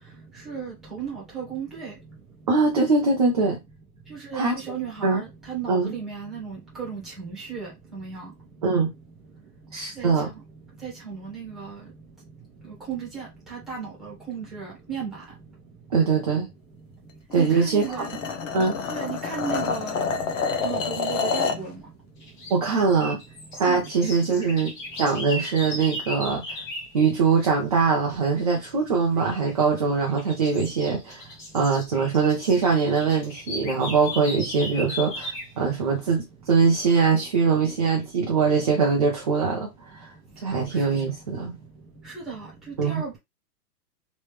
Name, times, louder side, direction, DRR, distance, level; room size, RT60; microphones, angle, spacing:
voice 1, 0.4-1.9 4.1-8.3 10.0-10.1 10.8-11.7 12.9-15.1 17.3-18.1 18.9-20.0 20.6-21.8 23.6-23.8 42.0-42.4 42.8-43.2, right 6 dB, ahead, 1.2 m, -35 dB
voice 2, 2.5-3.6 4.3-4.5 5.0-5.2 5.7-5.9 8.6-8.9 9.7-10.3 15.9-16.5 17.3-18.1 18.5-18.8 22.5-23.2 23.6-26.6 26.9-31.2 31.5-40.1 40.4-41.5 42.8-43.0, right 5 dB, 25° right, 0.4 m, -22 dB
sound 1, 17.3-21.7, left 5 dB, 55° left, 0.8 m, -28 dB
sound 2, 22.2-26.9 29.2-29.5 30.0-35.6, left 1 dB, 30° left, 1.2 m, -37 dB
3.3 x 3.0 x 3.1 m
supercardioid pair, 170°, 47 cm